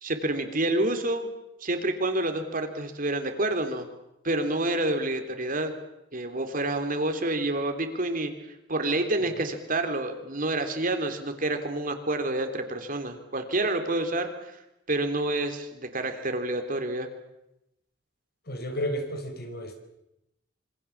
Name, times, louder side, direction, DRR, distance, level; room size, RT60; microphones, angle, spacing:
voice 1, 0.0-1.3 1.6-3.9 4.2-5.7 6.1-8.3 8.7-14.6 14.9-17.1, right 2 dB, 45° right, 7 dB, 3.4 m, -28 dB
voice 2, 18.5-19.8, equal, 55° left, 6 dB, 4.7 m, -32 dB
27.0 x 25.0 x 7.3 m, 0.86 s
head